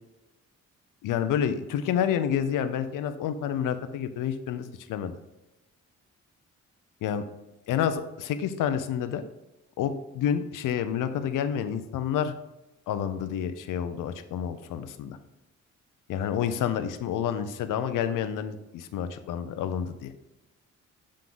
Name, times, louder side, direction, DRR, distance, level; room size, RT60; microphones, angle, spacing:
voice 1, 1.0-5.2 7.0-7.2 7.7-9.2 9.8-12.3 12.9-15.2 16.1-20.1, left 9 dB, 85° left, 10 dB, 0.6 m, -29 dB
7.6 x 3.8 x 3.7 m, 0.96 s
cardioid pair, 70°, 31 cm